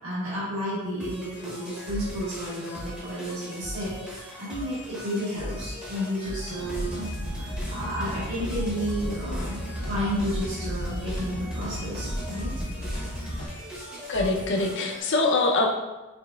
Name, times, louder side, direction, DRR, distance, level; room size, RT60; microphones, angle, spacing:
voice 1, 0.0-12.5, equal, 75° right, -10 dB, 1.5 m, -32 dB
sound 1, 1.0-15.0, equal, 5° right, 0.7 m, -39 dB
sound 2, 6.5-13.5, equal, 90° left, 0.9 m, -33 dB
voice 2, 14.1-15.7, left 3 dB, 55° left, 2 dB, 0.5 m, -23 dB
5.1 x 3.2 x 2.2 m, 1.1 s
head